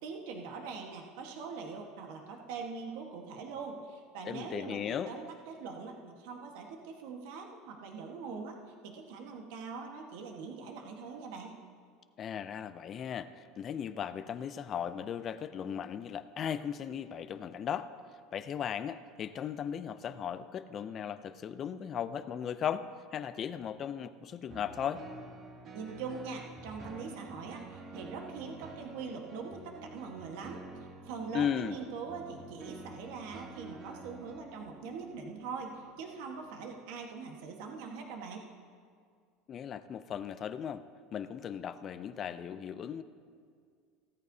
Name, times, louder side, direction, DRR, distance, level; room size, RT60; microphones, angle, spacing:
voice 1, 0.0-8.6 8.8-11.6 25.7-38.4, right 5 dB, 75° right, 2 dB, 1.3 m, -42 dB
voice 2, 4.3-5.1 12.2-17.9 18.3-22.9 23.1-25.0 31.3-31.8 39.5-40.8 41.1-43.0, left 8 dB, 35° left, 11 dB, 0.4 m, -37 dB
sound 1, 24.5-36.9 37.5-37.6, right 2 dB, 40° right, 1.4 m, -49 dB
16.5 x 14.0 x 2.7 m, 2.1 s
supercardioid pair, 140°, 0 cm